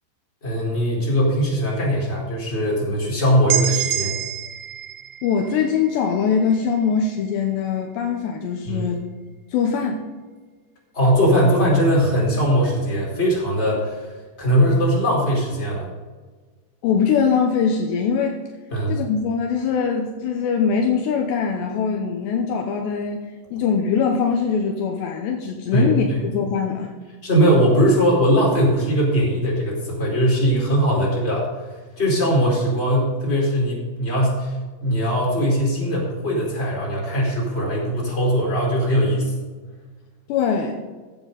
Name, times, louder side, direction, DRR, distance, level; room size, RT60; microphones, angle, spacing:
voice 1, 0.4-4.1 8.6-8.9 10.9-14.1 14.4-15.9 18.7-18.9 25.7-26.2 27.2-31.5 32.0-34.5 34.8-39.3, equal, 15° left, -4 dB, 4.1 m, -20 dB
sound 1, 3.5-7.3, right 11 dB, 90° right, 3.4 m, -28 dB
voice 2, 5.2-9.0 9.5-10.1 16.8-18.4 18.9-23.3 23.5-26.9 40.3-40.8, left 6 dB, 75° left, 2 dB, 3.0 m, -22 dB
15.0 x 9.4 x 4.0 m, 1.4 s
omnidirectional pair, 5.4 m